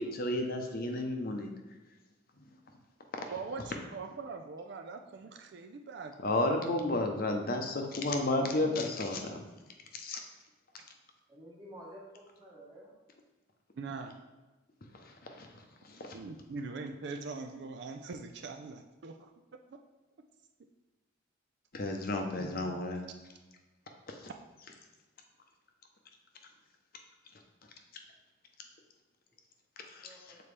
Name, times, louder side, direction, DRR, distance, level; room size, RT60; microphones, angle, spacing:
voice 1, 0.0-1.5 6.2-9.4 9.9-10.2 14.9-16.2 21.7-23.0 24.1-24.3 29.8-30.3, left 2 dB, 45° left, 3 dB, 0.6 m, -33 dB
voice 2, 3.3-6.1 13.8-14.2 16.1-19.3 19.7-19.8, right 4 dB, 55° right, 5 dB, 0.4 m, -42 dB
voice 3, 11.3-12.9 30.0-30.4, equal, 20° right, -4 dB, 1.3 m, -51 dB
6.9 x 4.2 x 3.3 m, 1.1 s
head